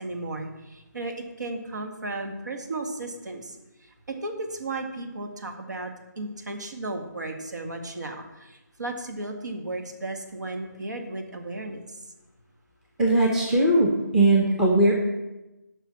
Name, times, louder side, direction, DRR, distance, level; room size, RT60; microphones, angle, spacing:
voice 1, 0.0-12.1, right 2 dB, 70° right, 4 dB, 1.9 m, -35 dB
voice 2, 13.0-14.9, right 1 dB, 5° right, -2 dB, 0.8 m, -20 dB
10.5 x 5.7 x 6.0 m, 1.0 s
figure-of-eight pair, 165°, 10 cm